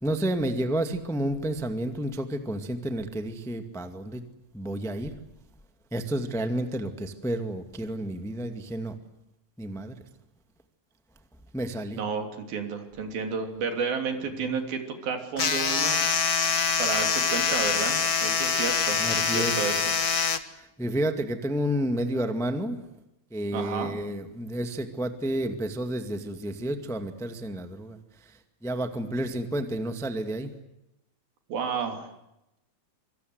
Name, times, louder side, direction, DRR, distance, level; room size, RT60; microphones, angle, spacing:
voice 1, 0.0-4.2 4.5-5.1 5.9-8.9 9.6-10.0 11.5-12.0 14.4-14.6 19.0-19.5 20.8-22.8 23.3-28.0 28.6-30.5, right 1 dB, ahead, 7 dB, 0.8 m, -30 dB
voice 2, 11.9-16.0 16.8-19.8 23.5-24.0 31.5-32.1, right 5 dB, 85° right, 5 dB, 5.0 m, -31 dB
sound 1, 15.4-20.4, left 6 dB, 75° left, 0.8 m, -25 dB
26.0 x 25.0 x 8.0 m, 0.89 s
omnidirectional pair, 4.1 m